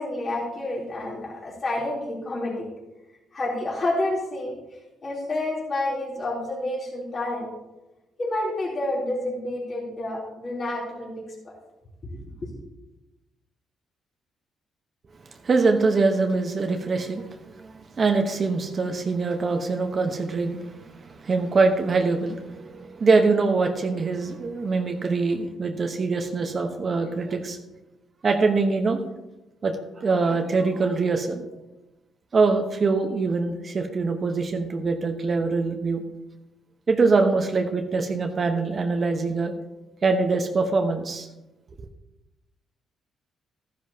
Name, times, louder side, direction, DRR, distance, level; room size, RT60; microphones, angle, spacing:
voice 1, 0.0-2.7 3.3-4.5 5.0-7.5 8.2-11.2 12.0-12.5, left 1 dB, 40° left, -4 dB, 3.3 m, -29 dB
voice 2, 15.4-17.3 17.5-27.6 28.2-29.0 29.6-31.4 32.3-36.0 36.9-39.5 40.0-41.3, right 4 dB, 40° right, 5 dB, 1.1 m, -23 dB
13.0 x 10.5 x 2.8 m, 1.0 s
cardioid pair, 90°, 0 cm